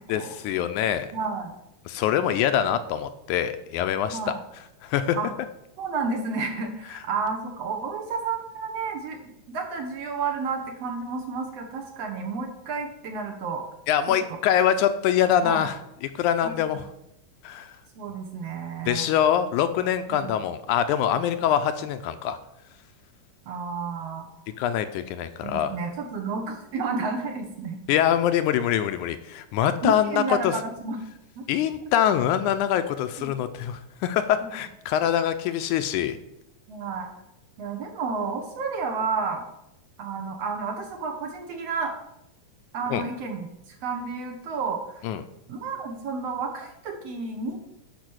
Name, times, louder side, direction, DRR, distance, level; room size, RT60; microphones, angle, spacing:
voice 1, 0.1-1.1 1.9-4.2 4.8-5.2 13.9-15.8 16.2-16.8 17.4-17.7 18.9-22.4 24.6-25.7 27.9-30.5 31.5-36.2 42.9-43.0 45.0-45.2, left 10 dB, 80° left, 10 dB, 1.9 m, -24 dB
voice 2, 1.1-1.5 4.1-4.4 5.1-5.3 5.8-13.6 15.4-15.7 16.4-16.6 18.0-19.1 20.1-20.3 23.5-24.3 25.4-27.8 29.8-31.0 31.4-31.5 33.2-33.3 34.4-34.5 36.7-37.1 37.6-39.4 40.0-41.9 42.7-43.5 43.8-45.0 45.5-47.6, right 4 dB, 60° right, 3 dB, 1.9 m, -31 dB
10.5 x 5.1 x 6.3 m, 0.82 s
omnidirectional pair, 3.7 m